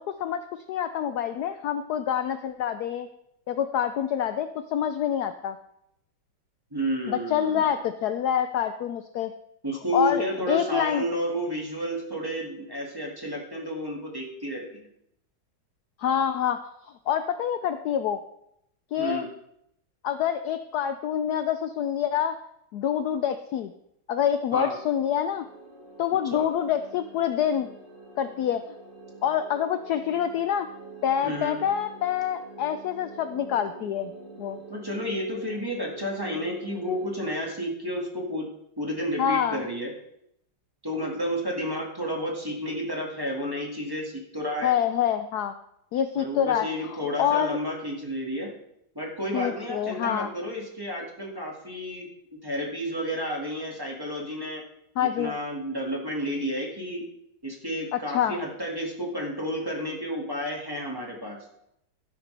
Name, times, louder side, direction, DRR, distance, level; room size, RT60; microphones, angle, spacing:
voice 1, 0.0-3.1 3.5-5.6 7.1-9.3 9.9-11.0 16.0-16.6 16.9-18.2 18.9-19.3 20.0-22.4 22.7-23.7 24.1-25.4 26.0-27.7 28.2-28.6 29.2-30.7 31.0-34.1 34.4-34.6 39.2-39.7 44.6-45.5 45.9-47.6 49.3-50.3 55.0-55.3 57.9-58.4, left 9 dB, 75° left, 9 dB, 0.9 m, -26 dB
voice 2, 6.7-7.7 9.6-14.9 19.0-19.3 24.5-24.7 26.3-26.5 31.2-31.6 34.7-38.5 38.8-39.9 40.8-44.7 46.1-48.5 49.0-52.1 52.4-54.6 55.0-57.0 57.4-61.4, equal, 10° right, -2 dB, 1.9 m, -31 dB
sound 1, 24.6-37.3, right 3 dB, 35° right, 2.1 m, -46 dB
12.5 x 10.5 x 3.4 m, 0.77 s
omnidirectional pair, 2.3 m